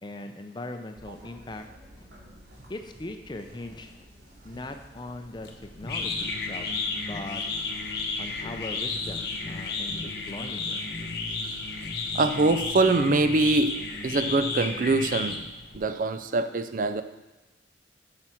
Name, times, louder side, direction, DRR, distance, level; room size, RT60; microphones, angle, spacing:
voice 1, 0.0-1.7 2.0-2.1 2.7-4.1 4.4-6.7 7.0-7.4 8.2-10.8, left 2 dB, 25° left, 6 dB, 0.6 m, -40 dB
sound 1, 1.0-9.1, equal, 90° right, 2.5 m, -52 dB
sound 2, 5.4-15.8, left 3 dB, 65° left, 0.9 m, -32 dB
voice 2, 11.3-11.6 12.1-15.5 15.7-17.0, right 3 dB, 45° right, 11 dB, 0.4 m, -24 dB
7.7 x 6.0 x 4.5 m, 1.1 s
head